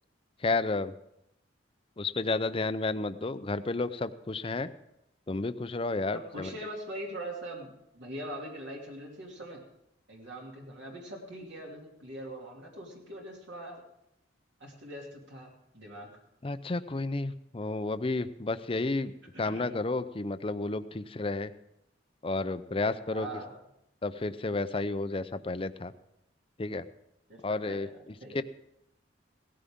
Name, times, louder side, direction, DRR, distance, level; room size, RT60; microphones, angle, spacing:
voice 1, 0.4-0.9 2.0-4.7 5.3-6.5 16.4-21.5 22.2-23.3 24.0-25.9 26.6-26.8 27.4-27.9 28.3-28.4, left 3 dB, 30° left, 12 dB, 0.5 m, -31 dB
voice 2, 6.1-9.6 10.1-13.8 14.6-16.1 19.4-19.7 23.1-23.6 27.3-28.4, right 1 dB, 70° right, -1 dB, 2.6 m, -42 dB
17.5 x 14.0 x 3.6 m, 0.80 s
head